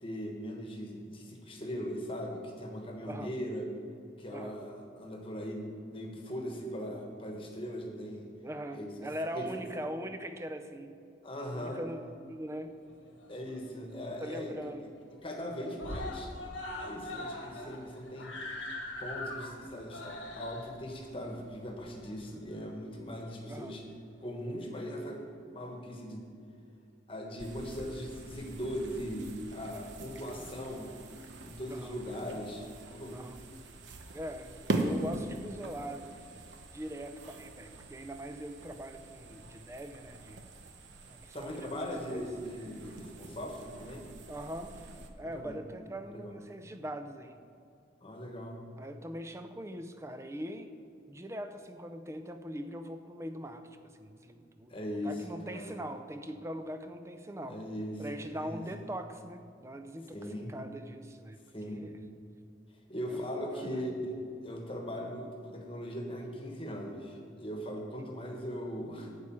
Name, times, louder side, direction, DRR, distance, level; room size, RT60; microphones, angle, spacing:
voice 1, 0.0-3.7 4.2-8.3 8.7-9.1 9.3-9.5 11.2-11.8 13.3-14.9 15.2-16.3 16.8-18.6 19.0-23.8 24.2-25.2 25.5-26.2 27.1-30.9 31.4-33.2 41.3-44.0 45.3-45.6 46.1-46.3 48.0-48.6 54.7-55.2 55.5-55.8 57.5-58.6 60.1-60.5 61.5-61.8 62.9-64.1 64.4-69.2, equal, 30° left, 2 dB, 1.2 m, -39 dB
voice 2, 8.4-10.9 11.5-12.8 14.2-14.8 23.5-23.8 31.7-32.0 33.1-33.4 34.1-36.3 36.7-40.4 41.1-41.8 42.1-42.3 44.3-44.7 45.2-47.4 48.8-50.7 51.1-57.6 58.0-60.2 60.5-61.4 61.7-62.0 63.1-63.8 68.0-68.1, equal, 15° right, 8 dB, 0.5 m, -41 dB
Screaming, 12.9-13.8 14.2-14.3 14.6-14.7 15.0-15.5 15.8-22.6 23.4-23.5, left 2 dB, 85° left, 1.4 m, -42 dB
sound 1, 27.4-45.1, right 2 dB, 70° right, 1.0 m, -42 dB
11.5 x 4.8 x 8.5 m, 2.6 s
head